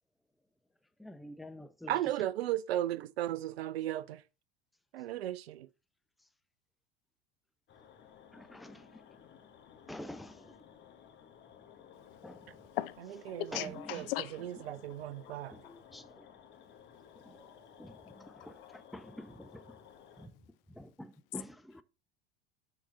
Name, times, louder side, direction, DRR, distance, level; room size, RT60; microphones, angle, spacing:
voice 1, 1.0-2.0 8.3-9.0 9.9-10.5 12.2-12.5 15.5-16.2 17.2-17.5 17.8-19.8 20.2-20.3 20.7-21.8, left 1 dB, ahead, 0.3 m, -49 dB
voice 2, 1.9-4.2 4.9-5.7 13.3-13.4 13.9-14.0 14.7-15.6, right 13 dB, 75° right, 0.5 m, -35 dB
sound 1, 7.7-20.3, left 8 dB, 35° left, 1.3 m, -57 dB
voice 3, 11.9-15.9 16.6-18.8 19.8-20.5 20.8-20.9, left 16 dB, 60° left, 0.7 m, -44 dB
7.1 x 3.9 x 3.8 m
figure-of-eight pair, 80°, 31 cm